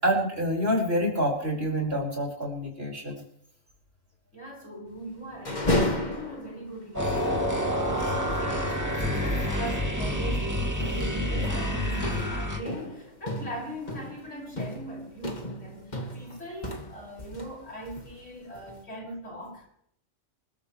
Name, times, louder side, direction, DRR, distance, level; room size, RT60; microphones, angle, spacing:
voice 1, 0.0-3.2, equal, 50° right, -1 dB, 5.4 m, -27 dB
voice 2, 4.3-10.5 10.8-19.7, right 1 dB, 70° left, -2 dB, 6.3 m, -40 dB
sound 1, 5.3-6.7 7.1-7.2 7.5-7.7 9.3-9.6 10.0-10.2 10.8-17.6 17.8-18.8, left 1 dB, 35° left, 2.0 m, -33 dB
sound 2, 6.9-12.6, equal, 15° right, 2.5 m, -28 dB
27.0 x 13.0 x 3.2 m, 0.67 s
omnidirectional pair, 1.3 m